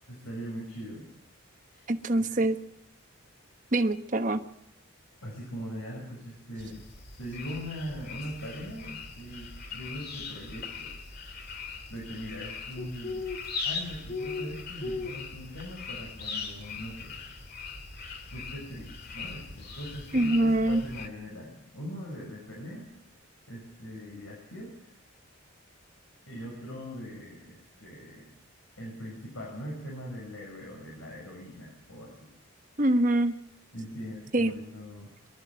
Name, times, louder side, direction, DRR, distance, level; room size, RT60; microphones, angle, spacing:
voice 1, 0.1-1.0 1.7-1.9 5.2-6.8 7.2-10.9 11.2-11.3 11.9-13.2 13.6-17.1 18.3-22.9 23.5-25.0 26.3-28.3 28.8-32.3 33.7-35.1, equal, 85° left, -2 dB, 6.8 m, -41 dB
voice 2, 1.9-2.6 3.7-4.4 20.1-20.8 32.8-33.4 34.3-34.5, right 1 dB, 40° right, 7 dB, 1.2 m, -24 dB
sound 1, 6.6-21.1, left 4 dB, 50° left, 2.3 m, -39 dB
24.0 x 13.0 x 9.0 m, 0.75 s
head